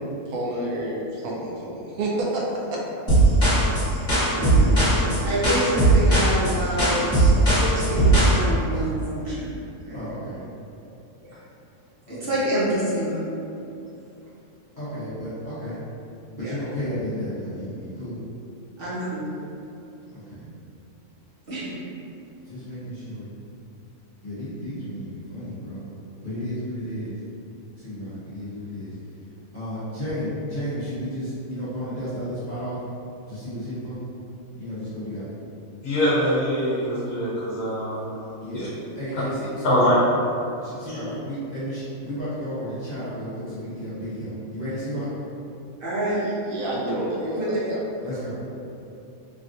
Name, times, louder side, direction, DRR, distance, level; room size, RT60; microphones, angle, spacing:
voice 1, 0.3-2.8 46.1-47.8, right 1 dB, 75° right, -3 dB, 1.0 m, -29 dB
sound 1, 3.1-8.4, right 2 dB, 15° left, 1.2 m, -18 dB
voice 2, 4.3-5.2 9.9-10.4 12.0-12.3 14.8-15.8 16.3-18.2 20.1-20.4 22.5-23.3 24.2-25.9 26.2-27.2 27.8-28.9 29.5-32.8 33.3-34.0 34.6-35.3 38.4-38.7 38.9-39.9 40.6-45.1 48.0-48.3, equal, 40° left, -13 dB, 0.7 m, -32 dB
voice 3, 5.2-9.5 9.8-10.0 11.3-11.4 12.1-13.2 16.4-16.6 18.8-19.3 21.5-21.8 45.8-46.2 47.3-47.5, right 1 dB, 50° right, -11 dB, 0.8 m, -27 dB
voice 4, 35.8-38.1 38.5-38.7 39.6-40.0 40.9-41.0, equal, 70° left, -8 dB, 1.1 m, -23 dB
3.4 x 2.4 x 2.6 m, 2.7 s
omnidirectional pair, 1.6 m